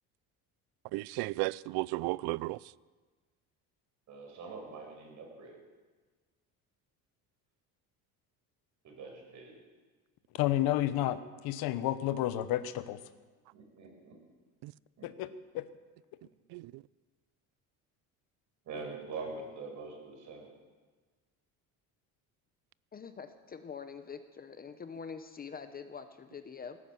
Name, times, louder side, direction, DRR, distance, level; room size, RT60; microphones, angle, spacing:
voice 1, 0.9-2.6 14.6-14.7 16.5-16.8, right 21 dB, 80° right, 0.5 m, -34 dB
voice 2, 4.1-5.6 8.8-9.5 13.5-14.1 15.0-15.1 18.7-20.5, right 4 dB, 50° right, 5.3 m, -44 dB
voice 3, 10.4-13.0 15.0-15.3 15.5-15.6, left 13 dB, 75° left, 1.0 m, -31 dB
voice 4, 22.9-26.8, left 6 dB, 25° left, 0.7 m, -45 dB
18.0 x 10.0 x 7.8 m
cardioid pair, 145°, 37 cm